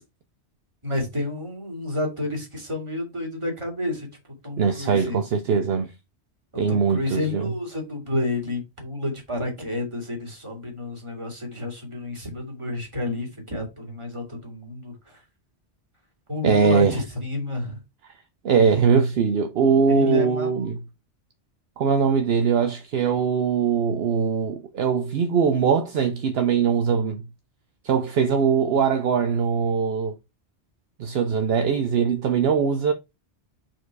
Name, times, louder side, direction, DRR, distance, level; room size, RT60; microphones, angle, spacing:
voice 1, 0.8-4.1 4.4-5.2 6.7-15.2 16.3-17.8 19.9-20.7, left 2 dB, 25° right, 2.4 m, -30 dB
voice 2, 4.6-5.9 6.6-7.5 16.4-17.0 18.4-20.8 21.8-27.2 27.8-30.1 31.0-32.9, right 6 dB, 65° right, 0.9 m, -21 dB
4.8 x 4.5 x 4.6 m
omnidirectional pair, 1.1 m